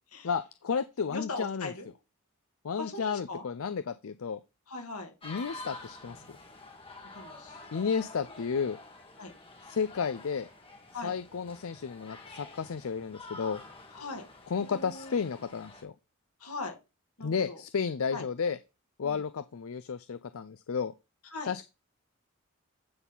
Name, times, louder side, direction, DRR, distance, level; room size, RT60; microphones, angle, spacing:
voice 1, 0.2-1.7 2.6-4.4 5.2-6.4 7.7-8.8 9.7-10.5 11.0-13.6 14.5-15.9 17.2-18.6 19.0-20.9 21.5-21.6, left 6 dB, 65° left, 13 dB, 0.5 m, -32 dB
voice 2, 1.1-1.9 2.8-3.5 4.7-5.1 7.1-7.6 9.2-9.3 10.9-11.1 13.9-14.3 14.6-15.2 16.4-16.8 17.2-17.6 18.1-18.2 19.0-19.2 21.3-21.5, left 3 dB, 85° left, 3 dB, 2.5 m, -40 dB
sound 1, 5.2-15.8, left 2 dB, 25° left, 1.7 m, -48 dB
9.5 x 4.1 x 5.5 m, 0.27 s
head